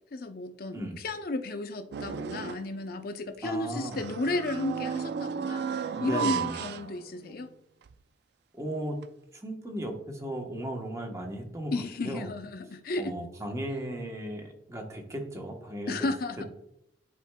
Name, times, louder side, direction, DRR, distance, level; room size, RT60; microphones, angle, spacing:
voice 1, 0.1-5.6 6.0-7.5 11.7-13.1 15.9-16.5, left 2 dB, 55° left, 0.6 m, -33 dB
voice 2, 0.7-1.0 3.4-4.0 5.9-6.6 8.5-9.0 9.3-12.3 13.0-16.1 16.4-16.5, right 1 dB, 15° right, 1.0 m, -36 dB
sound 1, 1.9-2.8 3.8-7.5 7.9-8.0 9.0-9.1, right 6 dB, 60° right, 0.3 m, -34 dB
11.0 x 4.5 x 2.2 m
head